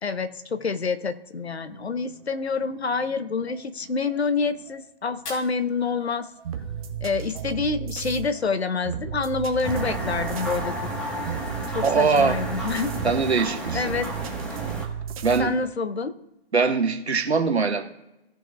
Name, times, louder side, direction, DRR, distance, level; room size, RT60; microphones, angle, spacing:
voice 1, 0.0-6.3 7.0-10.9 11.7-13.0 13.7-14.1 15.4-16.1, left 4 dB, 80° left, 11 dB, 1.1 m, -27 dB
sound 1, 1.4-15.7, right 8 dB, 35° right, 1.1 m, -36 dB
Fire, 5.1-7.1, left 2 dB, 45° left, 3.4 m, -44 dB
sound 2, 9.6-14.8, right 1 dB, 5° left, 1.5 m, -32 dB
voice 2, 11.8-12.4 13.0-13.9 15.2-15.5 16.5-17.8, right 5 dB, 80° right, 4 dB, 1.6 m, -22 dB
17.0 x 6.3 x 2.4 m, 0.91 s
figure-of-eight pair, 140°, 32 cm